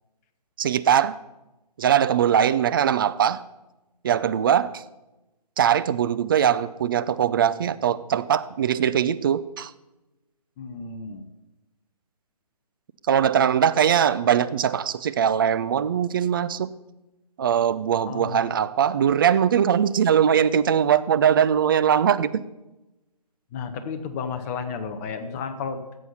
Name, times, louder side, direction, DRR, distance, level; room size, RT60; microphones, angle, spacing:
voice 1, 0.6-1.2 1.8-3.4 4.0-4.8 5.6-9.7 13.1-16.7 17.4-22.4, right 9 dB, 35° right, 15 dB, 0.4 m, -21 dB
voice 2, 10.6-11.3 18.0-18.5 23.5-25.8, left 5 dB, 20° left, 7 dB, 0.9 m, -32 dB
13.5 x 8.2 x 5.6 m, 1.0 s
figure-of-eight pair, 140°, 21 cm